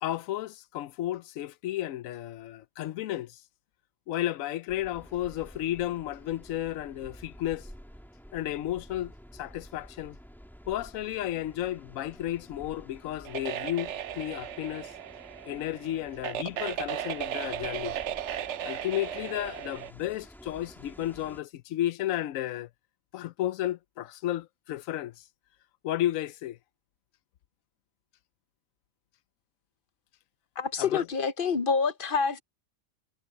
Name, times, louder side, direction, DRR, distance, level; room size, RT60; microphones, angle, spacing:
voice 1, 0.0-3.4 4.1-7.7 8.3-10.2 10.7-14.9 15.4-18.0 18.6-22.7 23.1-25.2 25.8-26.6 30.8-31.1, left 13 dB, 90° left, 1.0 m, -33 dB
sound 1, 4.7-21.4, equal, ahead, 2.5 m, -51 dB
sound 2, 13.3-19.9, right 10 dB, 65° right, 0.9 m, -36 dB
voice 2, 30.6-32.4, left 5 dB, 45° left, 0.9 m, -27 dB
omnidirectional pair, 1.4 m